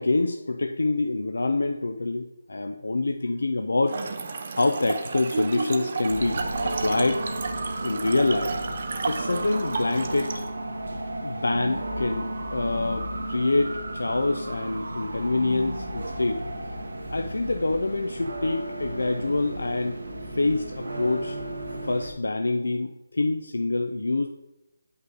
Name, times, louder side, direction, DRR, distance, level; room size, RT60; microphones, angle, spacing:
voice 1, 0.0-4.0 4.5-7.2 7.8-8.5 9.0-10.4 11.2-16.4 17.1-20.0 20.3-21.4 21.9-24.3, left 2 dB, 85° left, 5 dB, 0.5 m, -26 dB
Trickle dribble / Fill (with liquid), 3.9-10.5, right 4 dB, 35° right, 0.6 m, -32 dB
sound 1, 6.1-22.1, right 1 dB, 70° right, 1.2 m, -33 dB
7.7 x 5.5 x 3.9 m, 0.95 s
figure-of-eight pair, 170°, 0 cm